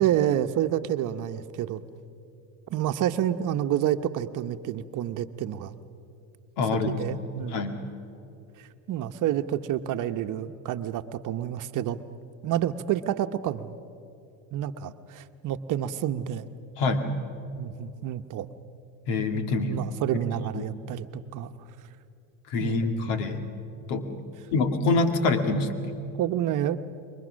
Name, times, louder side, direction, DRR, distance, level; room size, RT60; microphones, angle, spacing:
voice 1, 0.0-1.8 2.7-5.7 6.8-7.6 8.6-12.0 12.4-13.8 14.5-16.5 17.5-18.5 19.7-21.5 22.6-23.2 26.2-26.8, right 11 dB, 50° right, 9 dB, 1.0 m, -29 dB
voice 2, 6.6-7.0 7.5-7.8 16.8-17.1 19.1-19.8 20.5-20.7 22.5-23.4 23.9-24.1 24.5-26.0, left 3 dB, 75° left, 7 dB, 2.3 m, -25 dB
28.0 x 23.0 x 6.4 m, 2.7 s
supercardioid pair, 100°, 40 cm